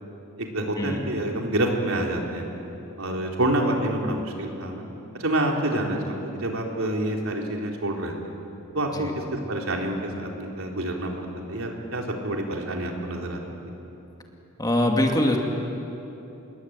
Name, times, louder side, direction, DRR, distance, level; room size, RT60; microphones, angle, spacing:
voice 1, 0.4-2.5 3.0-4.8 5.1-8.1 8.7-13.4, right 1 dB, 75° right, 0 dB, 4.0 m, -27 dB
voice 2, 14.6-15.4, left 1 dB, 20° left, 1 dB, 2.5 m, -22 dB
29.0 x 21.5 x 9.0 m, 3.0 s
head